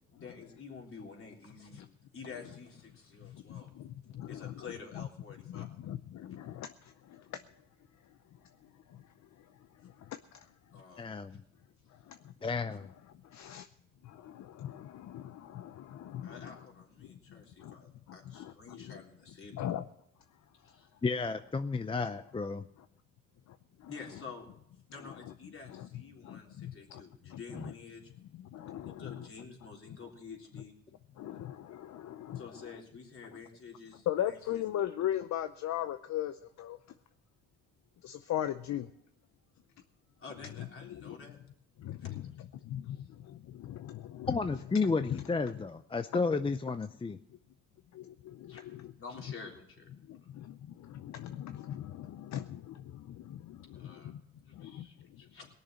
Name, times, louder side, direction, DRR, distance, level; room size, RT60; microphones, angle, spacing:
voice 1, 0.1-1.9 2.1-3.7 4.3-5.8 10.7-11.1 16.2-19.7 20.6-20.9 23.9-24.5 24.9-28.1 28.8-30.8 32.4-34.6 40.2-41.4 42.0-42.2 42.9-43.1 48.5-49.9 53.7-54.1 54.4-55.5, left 5 dB, 45° left, 0 dB, 3.6 m, -49 dB
voice 2, 4.2-4.5 5.0-5.1 5.5-6.0 6.4-6.7 13.4-13.6 14.6-14.7 15.1-15.2 16.1-16.2 19.6-19.8 27.5-27.7 28.6-29.2 31.2-31.5 31.9-32.4 34.1-36.3 36.6-36.8 38.0-38.8 41.1-41.2 42.7-42.8 44.2-44.4 45.1-45.2 51.2-52.1 52.3-52.4, left 12 dB, 65° left, 10 dB, 0.7 m, -35 dB
voice 3, 11.0-11.4 12.4-12.9 21.0-22.6 27.6-27.7 44.3-47.2, left 4 dB, 20° left, 10 dB, 0.5 m, -32 dB
19.0 x 6.6 x 7.5 m, 0.74 s
cardioid pair, 90°, 30 cm